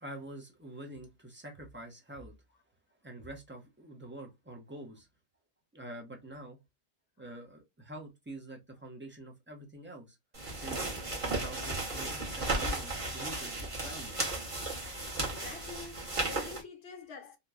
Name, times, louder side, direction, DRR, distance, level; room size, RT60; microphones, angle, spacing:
voice 1, 0.0-2.3 3.0-5.1 5.7-6.6 7.2-10.2 10.5-10.9 11.2-13.6 13.8-14.2, right 1 dB, 15° right, 0.5 m, -46 dB
sound 1, 10.3-16.6, right 2 dB, 30° right, 0.9 m, -35 dB
voice 2, 15.2-17.4, left 4 dB, 70° left, 1.0 m, -47 dB
2.9 x 2.1 x 2.2 m
omnidirectional pair, 1.2 m